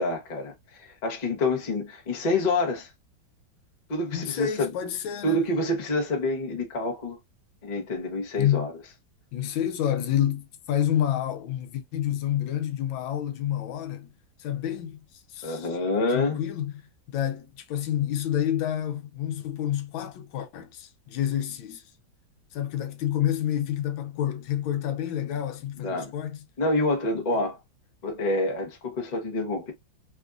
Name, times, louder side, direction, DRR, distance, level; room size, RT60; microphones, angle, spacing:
voice 1, 0.0-2.9 3.9-4.7 5.2-7.2 7.6-8.7 15.4-16.4 25.8-26.1 26.6-27.6 28.0-29.7, left 2 dB, 45° left, 0.5 m, -27 dB
voice 2, 4.1-5.4 8.4-8.7 9.3-14.1 14.4-15.0 15.3-15.8 16.1-16.7 17.1-21.8 22.5-26.4, left 11 dB, 85° left, 1.4 m, -28 dB
3.5 x 2.4 x 2.4 m
omnidirectional pair, 2.1 m